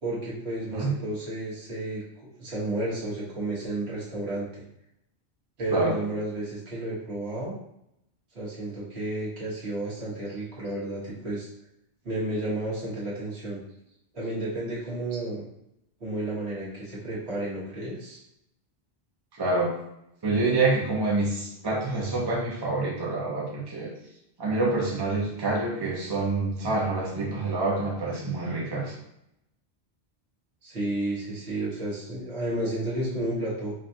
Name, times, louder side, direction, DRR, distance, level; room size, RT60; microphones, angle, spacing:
voice 1, 0.0-4.6 5.6-7.5 8.3-11.5 12.0-13.6 14.1-15.4 16.0-18.2 30.6-33.7, right 1 dB, 75° right, -7 dB, 1.6 m, -32 dB
voice 2, 19.3-19.7 20.2-23.9 24.4-28.9, right 3 dB, 25° right, -3 dB, 0.7 m, -27 dB
5.1 x 2.4 x 2.7 m, 0.80 s
omnidirectional pair, 1.1 m